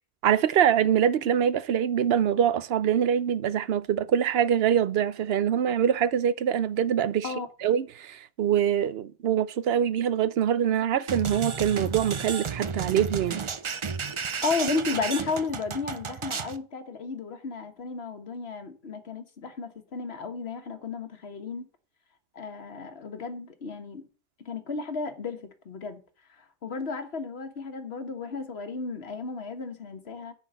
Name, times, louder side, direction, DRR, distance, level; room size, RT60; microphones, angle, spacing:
voice 1, 0.2-7.3 7.6-13.4, right 9 dB, 70° right, 0.8 m, -24 dB
sound 1, 11.1-16.6, right 5 dB, 40° right, 0.5 m, -33 dB
voice 2, 14.4-21.7 22.3-24.0 24.4-26.0 26.3-30.3, left 4 dB, 70° left, 1.5 m, -33 dB
9.9 x 4.5 x 7.8 m
omnidirectional pair, 1.1 m